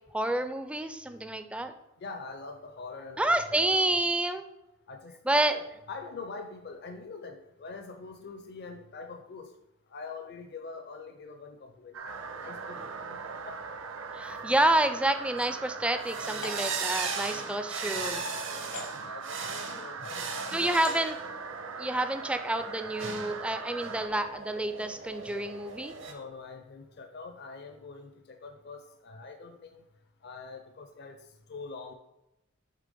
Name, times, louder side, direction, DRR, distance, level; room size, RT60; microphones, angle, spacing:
voice 1, 0.1-1.7 3.2-4.4 5.3-5.5 14.1-18.2 20.5-21.2 21.8-25.9, right 1 dB, 5° right, 8 dB, 0.4 m, -28 dB
voice 2, 2.0-3.6 4.9-9.5 9.9-13.7 17.6-21.0 26.1-29.8 30.2-31.2 31.5-31.9, left 4 dB, 50° left, 5 dB, 0.5 m, -44 dB
sound 1, 11.9-24.1, right 5 dB, 80° right, 0.6 m, -41 dB
sound 2, 12.1-26.1, right 4 dB, 60° right, 0.9 m, -39 dB
sound 3, 15.3-15.5 16.4-16.7 17.7-17.9 18.7-18.9 19.6-19.8 20.7-21.0, left 3 dB, 90° left, 1.6 m, -41 dB
7.6 x 3.3 x 5.2 m, 0.92 s
head